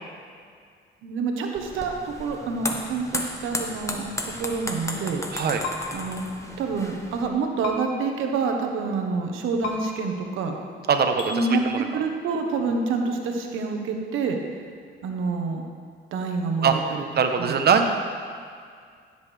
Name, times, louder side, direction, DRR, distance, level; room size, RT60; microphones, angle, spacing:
voice 1, 1.0-4.0 4.4-5.3 5.9-6.2 6.6-10.6 11.3-11.6 11.9-14.4 15.0-15.6 16.1-17.0 17.4-17.6, right 4 dB, 85° right, 3 dB, 1.3 m, -27 dB
sound 1, 1.6-7.3, left 1 dB, 15° left, 1.1 m, -34 dB
voice 2, 5.3-5.6 10.9-11.8 16.6-16.7 17.1-17.9, right 6 dB, 55° right, 5 dB, 1.1 m, -22 dB
sound 2, 5.6-5.8 7.6-7.8 9.6-9.7 11.2-11.3, left 5 dB, 90° left, 1.4 m, -30 dB
15.5 x 8.1 x 3.5 m, 2.2 s
cardioid pair, 90°, 20 cm